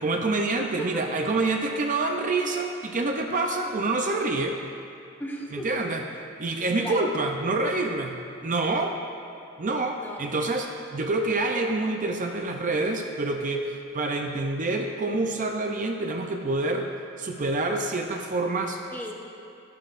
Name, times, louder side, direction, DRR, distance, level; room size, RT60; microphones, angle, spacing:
voice 1, 0.0-4.6 5.6-6.0 6.4-8.2 8.4-8.9 9.6-10.7 10.9-16.9 17.2-18.8, right 2 dB, 40° right, 3 dB, 0.5 m, -27 dB
voice 2, 5.2-5.7 6.8-7.1 10.0-10.2 18.9-19.1, equal, 10° left, 0 dB, 0.8 m, -35 dB
11.5 x 11.0 x 2.5 m, 2.5 s
head